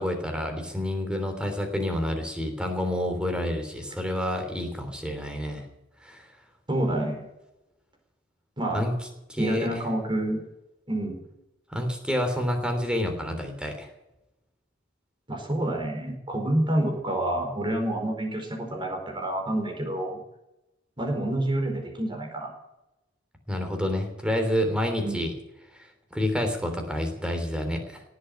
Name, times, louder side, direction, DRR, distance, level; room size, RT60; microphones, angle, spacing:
voice 1, 0.0-5.7 6.0-6.3 8.7-8.9 9.3-9.7 11.7-13.9 23.5-25.3 25.7-28.0, left 1 dB, 5° right, 5 dB, 3.3 m, -28 dB
voice 2, 6.7-7.2 8.6-8.8 9.4-10.4 10.9-11.2 15.3-20.2 21.0-22.5 25.0-25.2, right 1 dB, 25° right, 3 dB, 4.6 m, -28 dB
18.0 x 8.1 x 9.9 m, 0.94 s
head